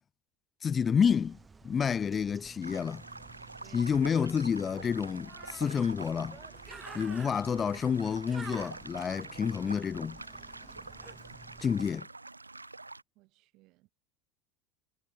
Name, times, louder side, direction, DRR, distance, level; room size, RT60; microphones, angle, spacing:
voice 1, 0.6-1.4 1.6-3.0 3.7-6.4 6.9-10.2 11.6-12.1, left 7 dB, 30° left, 0.5 m, -29 dB
Bird, 1.0-12.0, right 4 dB, 20° right, 1.7 m, -51 dB
sound 1, 2.6-13.0, right 3 dB, 90° right, 0.4 m, -46 dB
voice 2, 3.6-3.9 13.2-13.9, right 22 dB, 50° right, 1.9 m, -60 dB
figure-of-eight pair, 75°, 0 cm